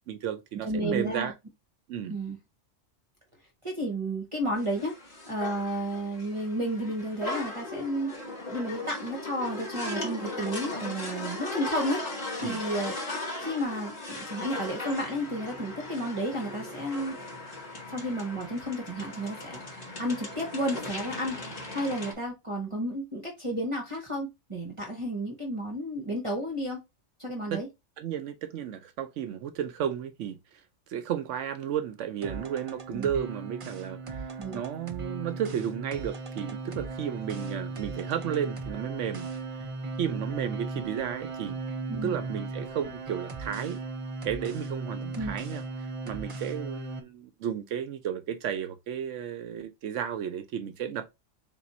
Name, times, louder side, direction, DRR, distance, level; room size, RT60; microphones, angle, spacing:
voice 1, 0.1-1.3 1.9-2.2 12.4-12.6 27.5-27.6 28.0-30.6 30.9-39.3 39.6-39.7 40.0-41.6 42.0-43.8 44.2-51.2, right 9 dB, 75° right, 0.9 m, -33 dB
voice 2, 0.6-1.3 2.1-2.4 3.6-4.9 5.3-12.9 13.4-17.3 17.9-19.6 20.0-21.3 21.7-26.8 27.2-27.7 32.9-33.1 34.4-34.6 41.9-42.1 45.2-45.3, equal, 25° right, 0.9 m, -32 dB
sound 1, 4.6-22.1, left 2 dB, 35° left, 1.3 m, -38 dB
sound 2, 32.2-47.0, right 3 dB, 45° right, 0.4 m, -37 dB
4.0 x 2.5 x 4.1 m
omnidirectional pair, 1.3 m